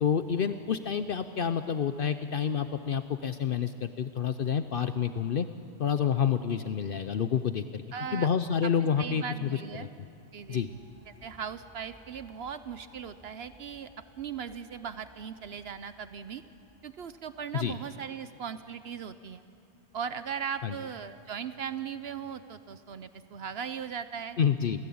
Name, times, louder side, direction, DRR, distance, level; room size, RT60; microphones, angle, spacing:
voice 1, 0.0-5.5 5.8-7.8 8.1-9.5 10.5-10.7 17.5-17.8 20.6-20.7 24.4-24.8, left 7 dB, 60° left, 10 dB, 0.8 m, -28 dB
voice 2, 7.9-8.3 9.0-9.9 10.3-10.8 11.1-13.9 14.2-16.4 16.8-19.4 19.9-24.4, right 7 dB, 70° right, 12 dB, 1.0 m, -38 dB
sound 1, 10.3-18.0, equal, 15° left, 6.0 m, -59 dB
28.0 x 17.0 x 8.6 m, 2.5 s
omnidirectional pair, 1.1 m